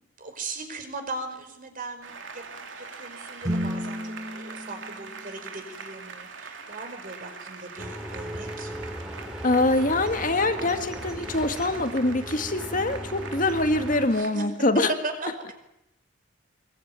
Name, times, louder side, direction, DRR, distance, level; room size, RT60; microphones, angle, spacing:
voice 1, 0.0-8.7 14.1-14.4 15.0-15.5, right 3 dB, 45° right, 6 dB, 4.9 m, -39 dB
Applause, 2.0-14.3, right 5 dB, 70° right, 3.1 m, -42 dB
sound 1, 3.4-5.8, equal, 20° right, 4.9 m, -33 dB
sound 2, 7.8-14.1, equal, 5° right, 3.5 m, -37 dB
voice 2, 9.4-14.9, left 2 dB, 40° left, 8 dB, 1.8 m, -24 dB
23.5 x 22.0 x 9.4 m, 0.86 s
head